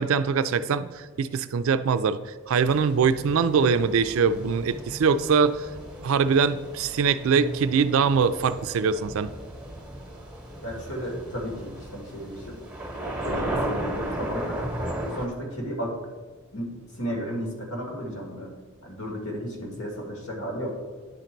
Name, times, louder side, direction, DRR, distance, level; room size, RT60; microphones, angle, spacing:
voice 1, 0.0-2.2 2.5-5.7 6.0-9.3, right 5 dB, 70° right, 13 dB, 0.3 m, -23 dB
sound 1, 2.6-15.3, right 1 dB, 5° right, 0.9 m, -35 dB
voice 2, 10.6-12.6 13.2-14.7 15.1-16.0 16.5-18.5 18.8-20.7, equal, 85° left, 0 dB, 1.9 m, -34 dB
10.0 x 3.9 x 4.5 m, 1.4 s
head